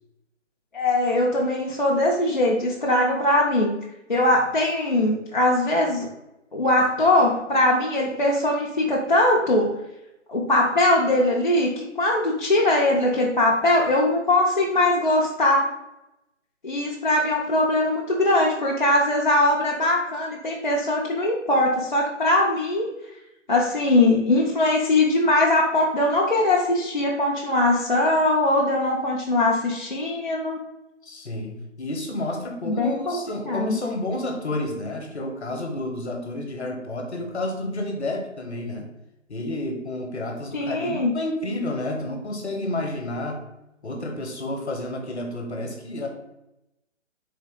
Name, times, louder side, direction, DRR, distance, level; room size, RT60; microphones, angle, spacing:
voice 1, 0.7-3.7 4.1-6.1 6.5-9.7 10.3-15.6 16.6-22.9 23.5-30.6 32.7-33.2 33.5-33.8 40.5-41.1, left 1 dB, 40° left, -3 dB, 0.4 m, -21 dB
voice 2, 31.0-38.9 39.3-43.4 43.8-46.1, left 1 dB, 60° left, 3 dB, 0.9 m, -30 dB
3.6 x 2.8 x 3.5 m, 0.91 s
figure-of-eight pair, 145°, 38 cm